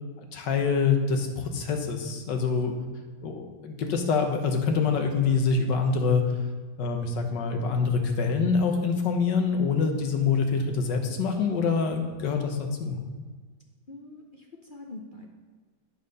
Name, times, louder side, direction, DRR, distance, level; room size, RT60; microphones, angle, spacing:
voice 1, 0.3-2.7 3.2-6.4 6.8-13.0, left 5 dB, 65° left, 4 dB, 1.6 m, -25 dB
voice 2, 13.9-15.3, left 2 dB, 45° left, 0 dB, 0.6 m, -44 dB
8.8 x 6.7 x 5.5 m, 1.4 s
omnidirectional pair, 2.1 m